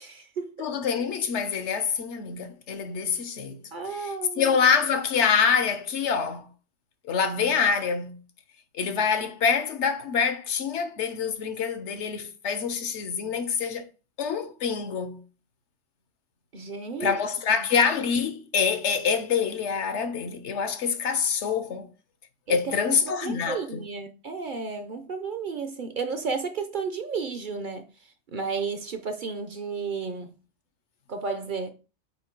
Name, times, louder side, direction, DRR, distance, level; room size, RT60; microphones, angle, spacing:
voice 1, 0.0-0.7 3.7-4.6 16.5-17.2 22.5-22.8 23.2-27.9 28.3-30.4 31.1-31.7, right 5 dB, 50° right, 0.7 m, -32 dB
voice 2, 0.6-6.5 7.0-8.2 8.7-13.9 14.2-15.2 17.0-21.9 22.5-23.9, left 6 dB, 70° left, 1.1 m, -26 dB
8.2 x 2.7 x 4.5 m
omnidirectional pair, 1.2 m